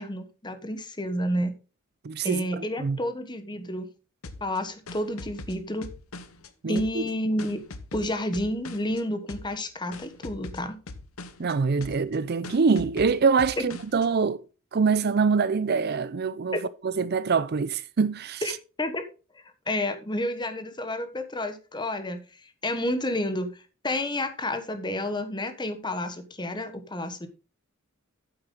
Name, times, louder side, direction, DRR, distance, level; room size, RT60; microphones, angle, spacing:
voice 1, 0.0-1.5 2.2-3.9 4.4-5.9 6.7-7.6 7.9-10.8 18.4-18.5 18.8-19.0 19.3-27.3, left 1 dB, 20° left, 1.2 m, -30 dB
voice 2, 2.0-3.0 6.6-7.0 11.4-14.4 14.7-16.6 16.8-18.4, right 5 dB, 50° right, 0.5 m, -24 dB
sound 1, 4.2-6.5 6.8-9.0 9.3-9.6 9.9-11.5 11.8-12.2 12.4-14.1, left 3 dB, 90° left, 1.1 m, -41 dB
9.2 x 7.9 x 3.8 m
head